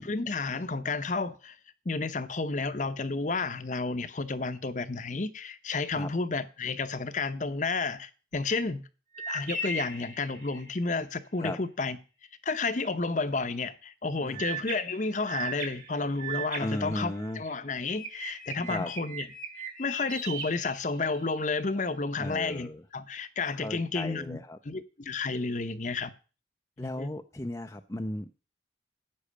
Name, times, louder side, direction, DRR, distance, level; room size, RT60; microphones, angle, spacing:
voice 1, 0.0-1.6 1.8-8.8 9.3-12.0 12.4-19.3 19.6-24.4 24.6-26.1 26.8-27.1, left 3 dB, 40° left, 0.8 m, -31 dB
sound 1, 9.1-10.9 14.3-17.5 17.9-21.4, right 3 dB, 45° right, 2.4 m, -38 dB
voice 2, 16.6-17.4 18.6-18.9 22.2-22.8 23.5-24.6 26.8-28.4, left 1 dB, 15° left, 0.5 m, -36 dB
10.0 x 7.7 x 6.4 m
head